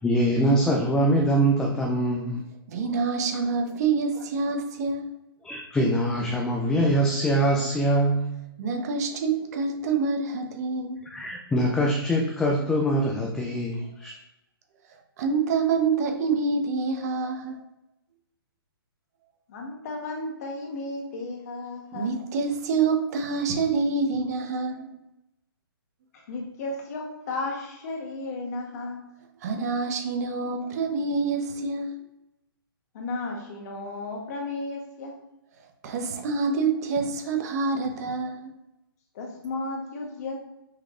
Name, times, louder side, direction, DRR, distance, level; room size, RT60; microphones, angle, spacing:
voice 1, 0.0-2.4 5.4-8.3 11.0-14.2, right 1 dB, 5° left, -1 dB, 0.4 m, -23 dB
voice 2, 2.7-5.1 8.6-11.0 15.2-17.6 21.9-24.9 29.4-31.9 35.8-38.5, right 4 dB, 40° right, 4 dB, 0.9 m, -26 dB
voice 3, 19.5-22.1 26.1-29.0 32.9-35.2 39.1-40.4, left 2 dB, 40° left, 1 dB, 1.1 m, -34 dB
5.7 x 3.2 x 2.5 m, 0.91 s
hypercardioid pair, 150°, 13 cm